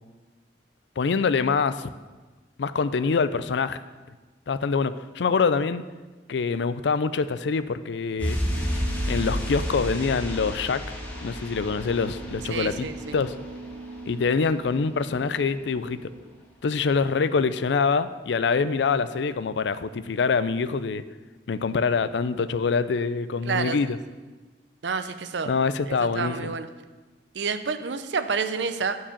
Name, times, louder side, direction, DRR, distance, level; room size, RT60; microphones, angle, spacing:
voice 1, 1.0-1.9 2.6-3.8 4.5-5.8 6.3-8.4 9.0-10.8 11.2-13.4 14.1-16.1 16.6-21.0 21.5-24.0 25.5-26.6, left 5 dB, 70° left, 13 dB, 0.4 m, -25 dB
sound 1, 8.2-14.7 15.0-15.1, equal, 10° left, 2.1 m, -32 dB
sound 2, 8.4-16.3, right 1 dB, 55° right, 2.2 m, -42 dB
voice 2, 12.5-13.2 23.4-23.8 24.8-25.5 25.9-26.7 27.3-29.0, right 5 dB, 75° right, 10 dB, 0.6 m, -29 dB
10.0 x 4.7 x 7.2 m, 1.3 s
head